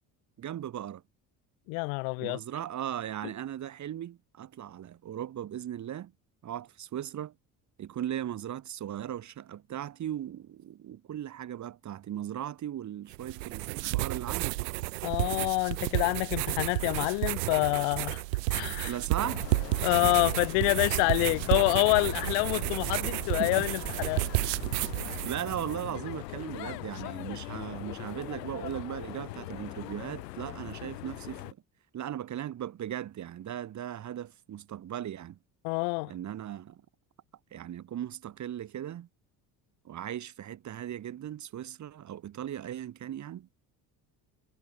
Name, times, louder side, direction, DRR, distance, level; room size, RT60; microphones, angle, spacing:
voice 1, 0.4-1.0 2.2-6.1 6.4-7.3 7.8-14.8 18.8-19.5 19.7-19.9 22.9-23.0 23.4-23.6 25.2-31.6 31.9-35.4 36.0-36.8 37.5-39.1 39.8-43.5, right 11 dB, 35° right, 0.9 m, -38 dB
voice 2, 1.7-2.4 15.0-18.2 18.5-18.9 19.8-24.2 35.6-36.1, left 36 dB, 70° left, 0.5 m, -27 dB
sound 1, 13.1-25.8, right 21 dB, 85° right, 0.9 m, -31 dB
sound 2, 19.2-31.5, left 18 dB, 85° left, 2.5 m, -41 dB
hypercardioid pair, 65°, 47 cm